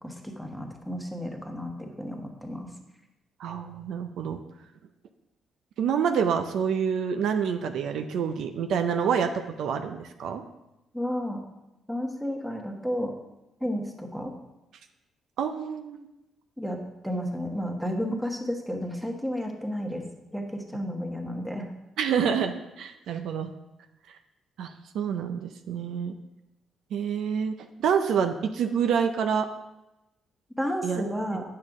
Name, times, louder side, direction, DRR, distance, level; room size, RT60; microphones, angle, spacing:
voice 1, 0.0-2.7 10.9-11.4 11.9-13.1 13.6-14.3 16.6-16.8 17.0-20.0 20.3-21.7 30.6-31.4, equal, 5° right, 2 dB, 1.3 m, -32 dB
voice 2, 3.4-4.4 5.8-10.4 15.4-16.1 22.0-23.5 24.1-24.2 24.6-26.1 26.9-27.5 27.8-29.5 30.8-31.0, right 7 dB, 75° right, 7 dB, 0.5 m, -27 dB
8.6 x 6.6 x 3.6 m, 0.96 s
cardioid pair, 90°, 0 cm